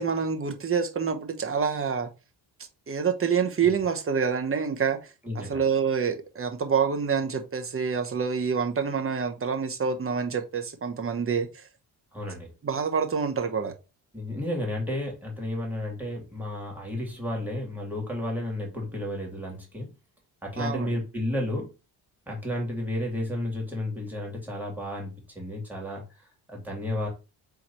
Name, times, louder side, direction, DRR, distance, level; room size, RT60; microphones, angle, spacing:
voice 1, 0.0-2.1 2.9-5.0 5.3-11.6 12.6-13.7 20.6-20.9, right 6 dB, 30° right, 1.0 m, -27 dB
voice 2, 5.2-5.6 12.1-12.5 14.1-19.9 20.4-21.7 22.3-26.0 26.5-27.1, left 1 dB, 5° right, 2.4 m, -32 dB
3.8 x 3.1 x 4.3 m
cardioid pair, 85°, 42 cm